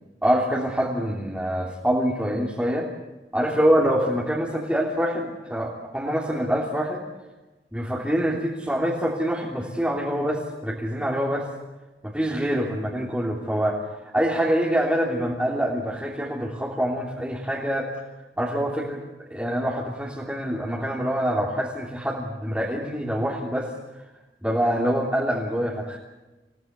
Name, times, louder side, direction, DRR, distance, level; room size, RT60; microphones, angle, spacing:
voice 1, 0.2-2.9 3.3-7.0 7.7-11.5 12.0-13.8 14.1-17.9 18.4-23.7 24.4-26.0, equal, 5° right, -4 dB, 3.1 m, -25 dB
28.0 x 17.5 x 8.1 m, 1.1 s
head